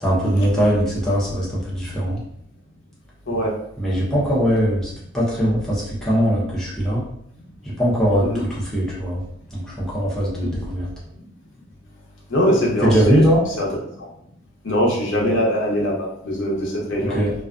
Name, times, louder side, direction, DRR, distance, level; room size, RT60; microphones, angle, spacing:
voice 1, 0.0-2.2 3.8-7.1 7.6-9.2 9.5-10.9 12.8-13.4 17.0-17.3, equal, ahead, -8 dB, 0.6 m, -21 dB
voice 2, 12.3-13.2 13.6-13.7 14.6-17.2, equal, 75° left, -3 dB, 0.7 m, -21 dB
2.4 x 2.3 x 2.3 m, 0.72 s
head